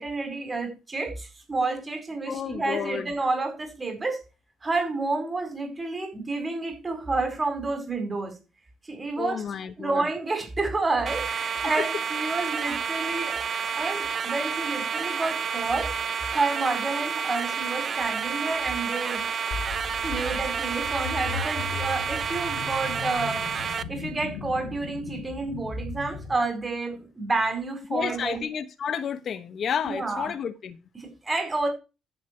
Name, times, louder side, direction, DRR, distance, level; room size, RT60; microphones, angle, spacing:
voice 1, 0.0-4.2 4.6-8.4 8.8-9.4 9.8-13.4 13.8-15.9 16.3-19.3 20.0-23.5 23.9-28.4 29.8-30.3 30.9-31.7, right 3 dB, 25° right, 4.5 m, -29 dB
voice 2, 2.3-3.1 9.2-10.1 11.6-11.9 27.9-30.8, left 7 dB, 60° left, 1.2 m, -31 dB
sound 1, 11.1-23.8, right 6 dB, 50° right, 1.0 m, -30 dB
sound 2, 19.5-26.4, left 5 dB, 85° left, 1.9 m, -37 dB
11.0 x 8.2 x 4.5 m
cardioid pair, 90°, 0 cm